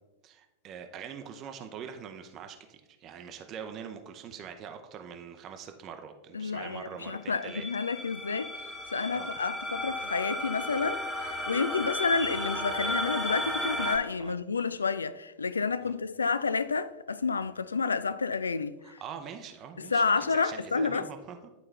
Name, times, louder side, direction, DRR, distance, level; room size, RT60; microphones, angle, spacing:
voice 1, 0.2-7.7 9.1-9.3 14.2-14.3 15.8-15.9 18.8-21.5, right 7 dB, 35° right, 0.6 m, -43 dB
voice 2, 6.3-8.5 8.9-18.8 19.8-21.1, left 4 dB, 75° left, 0.3 m, -30 dB
sound 1, 7.3-14.0, left 1 dB, 10° left, 1.3 m, -34 dB
10.5 x 4.3 x 3.3 m
figure-of-eight pair, 90°, 0 cm